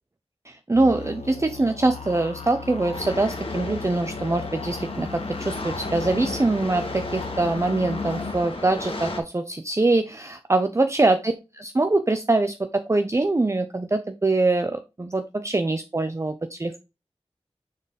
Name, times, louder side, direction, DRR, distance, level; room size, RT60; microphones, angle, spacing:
voice 1, 0.5-16.8, right 2 dB, 25° right, 8 dB, 0.5 m, -23 dB
sound 1, 0.7-8.3, left 5 dB, 70° left, 1.0 m, -36 dB
sound 2, 2.9-9.2, left 2 dB, 55° left, 1.6 m, -34 dB
6.3 x 3.8 x 4.0 m, 0.27 s
wide cardioid pair, 65°, 11 cm